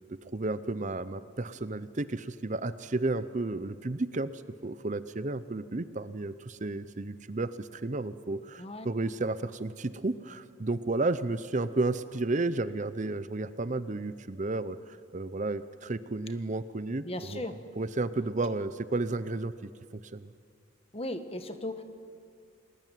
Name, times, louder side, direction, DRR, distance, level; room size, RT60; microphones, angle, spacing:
voice 1, 0.2-17.5 17.8-20.3, right 2 dB, 35° right, 13 dB, 0.6 m, -32 dB
voice 2, 17.0-17.5 20.9-21.8, left 1 dB, 30° left, 8 dB, 1.5 m, -36 dB
29.5 x 20.5 x 9.2 m, 2.3 s
head